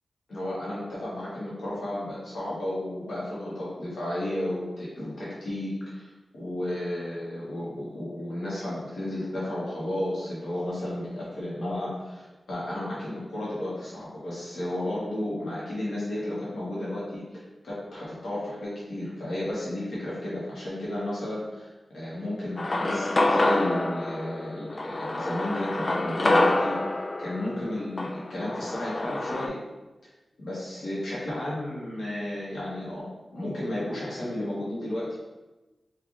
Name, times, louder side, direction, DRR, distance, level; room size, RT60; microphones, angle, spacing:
voice 1, 0.3-26.8 27.2-29.6 30.4-35.2, left 1 dB, 90° left, -8 dB, 1.2 m, -33 dB
sound 1, 22.6-29.5, left 2 dB, 40° left, 0.3 m, -27 dB
3.3 x 2.4 x 3.8 m, 1.1 s
wide cardioid pair, 75°, 0 cm